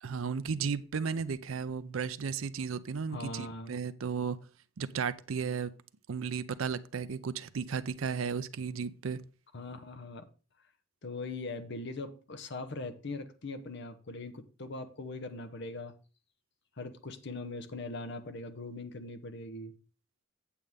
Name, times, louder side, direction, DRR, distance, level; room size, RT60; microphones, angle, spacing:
voice 1, 0.0-4.4 4.8-5.7 6.1-9.2, right 6 dB, 85° right, 0.5 m, -34 dB
voice 2, 3.1-3.8 9.5-10.2 11.0-15.9 16.8-19.7, left 2 dB, 60° left, 0.9 m, -41 dB
8.4 x 7.7 x 3.6 m
head